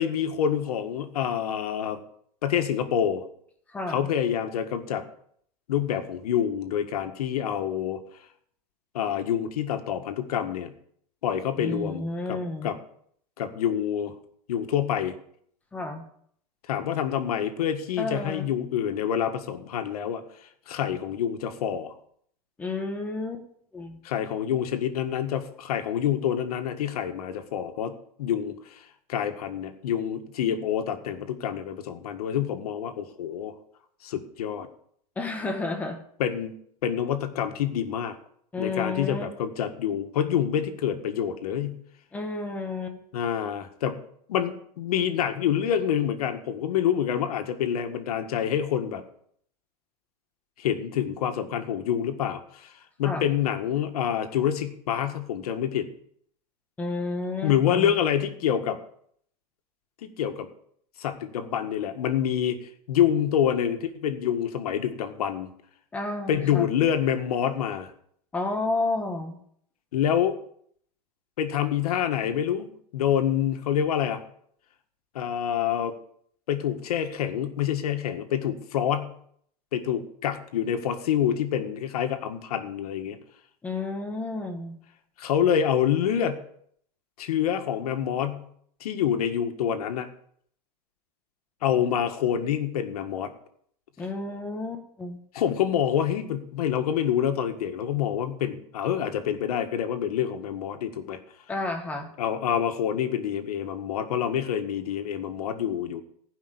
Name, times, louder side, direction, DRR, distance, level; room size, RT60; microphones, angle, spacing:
voice 1, 0.0-2.0 2.4-3.2 3.9-5.0 5.7-8.0 8.9-10.7 11.2-12.8 13.4-14.1 14.5-15.1 16.7-20.2 20.7-22.0 24.0-27.9 28.2-28.8 29.1-33.6 34.0-34.7 36.2-36.5 36.8-38.2 38.6-41.8 43.1-44.0 44.3-49.0 50.6-52.7 53.0-55.9 57.4-58.8 60.0-60.5 61.0-62.6 62.9-65.5 66.3-67.9 69.9-70.4 71.4-74.2 75.1-75.9 76.5-79.1 79.7-83.2 85.2-86.4 87.2-88.5 88.8-90.1 91.6-93.3 95.3-101.2 102.2-106.0, left 9 dB, 70° left, 7 dB, 1.8 m, -27 dB
voice 2, 3.7-4.1 11.6-12.7 15.7-16.0 18.0-18.5 22.6-23.4 23.7-24.0 35.2-36.0 38.5-39.3 42.1-43.0 53.0-53.3 56.8-58.0 65.9-66.7 68.3-69.4 83.6-84.8 94.0-95.2 101.5-102.1, left 2 dB, 5° left, 5 dB, 1.0 m, -31 dB
15.5 x 5.6 x 9.8 m, 0.66 s
supercardioid pair, 180°, 20 cm